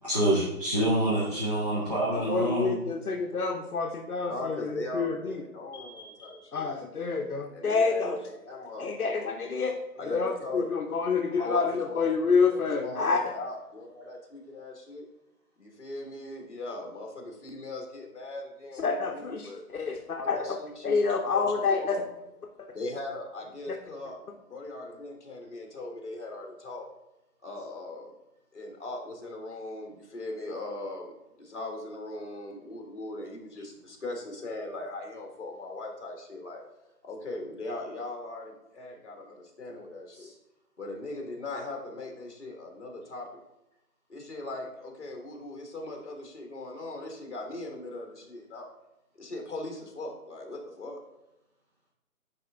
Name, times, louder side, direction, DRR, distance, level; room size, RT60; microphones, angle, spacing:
voice 1, 0.0-2.8 40.2-40.3, right 1 dB, 25° right, -8 dB, 1.0 m, -27 dB
voice 2, 2.1-5.3 5.7-8.2 8.8-9.8 10.0-13.2 18.8-20.4 20.8-22.0 22.6-22.7, left 4 dB, 70° left, 2 dB, 0.8 m, -28 dB
voice 3, 4.2-6.8 7.5-9.5 9.9-10.9 11.3-12.1 12.5-15.1 15.6-19.6 20.1-22.1 22.7-26.9 27.4-28.1 28.5-36.6 37.0-40.3 40.8-43.3 44.1-48.7 49.2-51.0, left 2 dB, 50° left, 3 dB, 1.4 m, -39 dB
10.0 x 3.4 x 3.5 m, 0.93 s
figure-of-eight pair, 175°, 45 cm